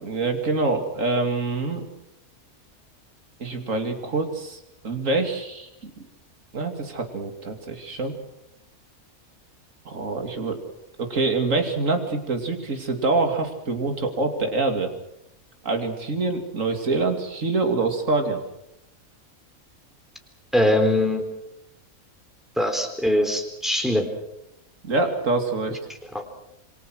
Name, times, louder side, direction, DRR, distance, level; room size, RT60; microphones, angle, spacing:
voice 1, 0.0-1.9 3.4-5.9 6.5-8.1 9.8-10.6 11.0-14.9 15.6-18.4 24.8-25.8, right 3 dB, 60° right, 5 dB, 3.0 m, -25 dB
voice 2, 20.5-21.2 22.6-24.1 26.1-26.2, left 1 dB, ahead, 4 dB, 3.8 m, -21 dB
27.5 x 23.0 x 6.3 m, 0.84 s
omnidirectional pair, 1.5 m